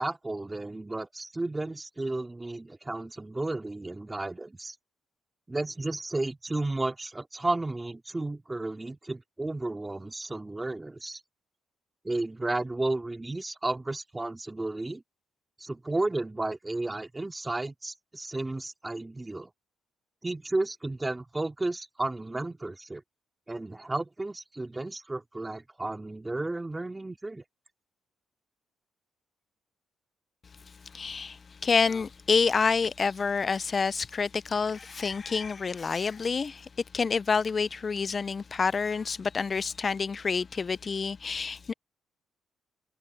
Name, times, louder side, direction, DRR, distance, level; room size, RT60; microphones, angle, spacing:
voice 1, 0.0-4.8 5.5-11.2 12.0-15.0 15.6-19.5 20.2-23.0 23.5-27.4, right 2 dB, 15° right, 2.4 m, -33 dB
voice 2, 30.9-41.7, left 5 dB, 35° left, 0.3 m, -28 dB
cardioid pair, 90°, 0 cm